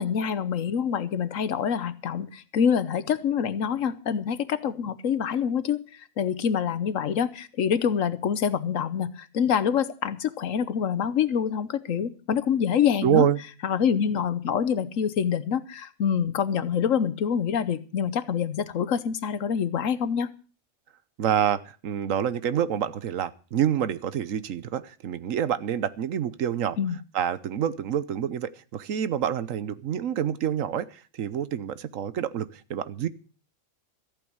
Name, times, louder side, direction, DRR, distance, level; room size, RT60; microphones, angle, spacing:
voice 1, 0.0-5.8 6.2-13.2 13.6-20.3 26.8-27.0, left 7 dB, 75° left, 15 dB, 1.3 m, -26 dB
voice 2, 13.0-13.4 21.2-26.8 27.1-33.1, right 9 dB, 75° right, 15 dB, 1.2 m, -27 dB
14.0 x 8.8 x 7.9 m, 0.39 s
omnidirectional pair, 1.4 m